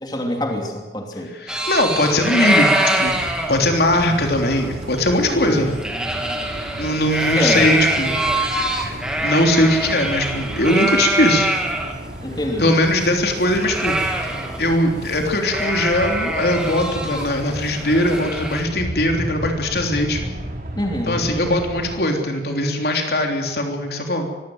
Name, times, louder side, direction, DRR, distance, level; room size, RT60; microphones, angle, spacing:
voice 1, 0.0-1.3 5.3-5.7 7.3-7.7 12.2-12.7 20.8-21.2, left 1 dB, 25° left, 1 dB, 2.8 m, -25 dB
voice 2, 1.3-5.8 6.8-8.3 9.2-11.5 12.6-14.0 14.3-20.3 21.1-24.3, left 1 dB, 65° left, 2 dB, 3.4 m, -20 dB
sound 1, 1.5-11.9 12.3-12.4 12.6-14.8 15.0-15.2 15.4-18.6, right 1 dB, 5° right, 2.3 m, -24 dB
sound 2, 3.1-22.0, equal, 50° right, 3.2 m, -33 dB
24.0 x 16.0 x 7.9 m, 1.1 s
head